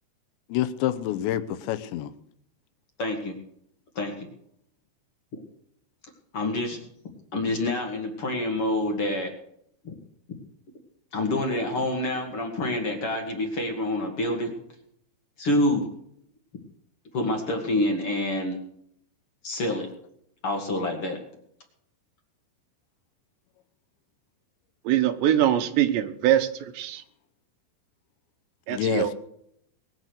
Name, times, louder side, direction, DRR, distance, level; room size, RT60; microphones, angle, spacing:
voice 1, 0.5-2.1 28.7-29.1, left 12 dB, 80° left, 10 dB, 3.1 m, -27 dB
voice 2, 3.0-3.3 4.0-4.3 6.3-6.8 7.3-9.3 9.8-10.0 11.1-14.5 15.4-15.8 17.1-18.6 19.4-19.9 20.4-21.2, left 1 dB, 40° left, 3 dB, 2.4 m, -27 dB
voice 3, 24.8-27.0 28.7-29.1, right 11 dB, 80° right, 9 dB, 3.3 m, -23 dB
21.0 x 8.2 x 6.5 m, 0.70 s
omnidirectional pair, 5.2 m